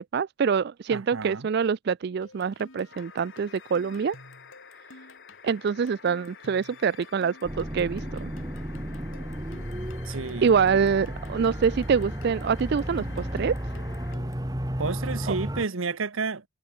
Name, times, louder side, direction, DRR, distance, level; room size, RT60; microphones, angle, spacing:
voice 1, 0.0-4.2 5.4-8.3 10.4-13.6 15.3-15.4, right 6 dB, 50° right, 0.3 m, -25 dB
voice 2, 0.9-1.5 10.0-10.6 14.8-16.4, right 4 dB, 70° right, 1.0 m, -31 dB
sound 1, 2.2-14.5, left 2 dB, 70° left, 6.9 m, -51 dB
sound 2, 2.9-14.2 15.6-15.7, left 6 dB, 50° left, 6.2 m, -51 dB
sound 3, 7.4-15.7, equal, 20° right, 2.2 m, -33 dB
head